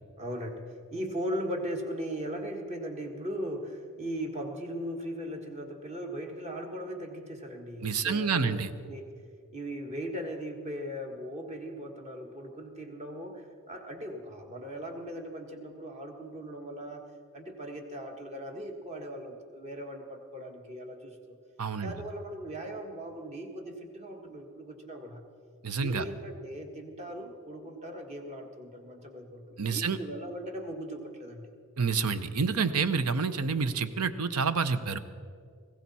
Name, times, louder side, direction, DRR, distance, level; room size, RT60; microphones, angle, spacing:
voice 1, 0.2-8.6 8.8-9.1 9.5-17.0 17.3-21.3 21.8-25.3 25.8-31.5, equal, 30° right, 3 dB, 1.5 m, -38 dB
voice 2, 7.8-8.7 21.6-21.9 25.6-26.0 29.6-30.0 31.8-35.0, right 5 dB, 80° right, 12 dB, 0.8 m, -28 dB
19.5 x 16.5 x 4.2 m, 2.3 s
head